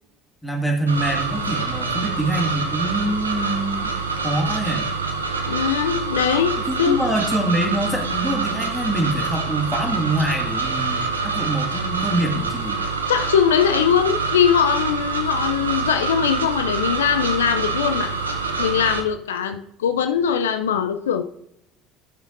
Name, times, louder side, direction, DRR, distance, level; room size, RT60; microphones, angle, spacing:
voice 1, 0.4-3.9 4.2-4.9 6.7-12.8, right 1 dB, 5° left, 1 dB, 2.0 m, -25 dB
sound 1, 0.9-19.0, right 4 dB, 85° right, 0.7 m, -26 dB
voice 2, 5.4-7.0 13.1-18.1 18.6-21.2, left 8 dB, 80° left, 8 dB, 0.4 m, -21 dB
13.0 x 6.3 x 2.6 m, 0.73 s
figure-of-eight pair, 65°, 0 cm